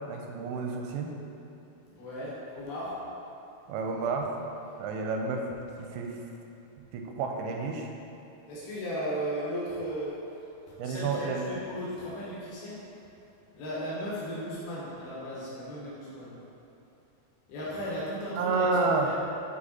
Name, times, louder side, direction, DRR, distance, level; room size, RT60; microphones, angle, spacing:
voice 1, 0.1-1.1 3.7-4.4 4.8-5.4 5.8-6.2 6.8-7.9 10.8-11.5 18.4-19.1, right 4 dB, 85° right, 2 dB, 2.4 m, -30 dB
voice 2, 1.9-3.1 8.5-10.3 10.7-13.1 13.5-16.3 17.5-19.1, equal, 85° left, -8 dB, 3.0 m, -36 dB
8.3 x 2.8 x 4.0 m, 2.8 s
omnidirectional pair, 4.2 m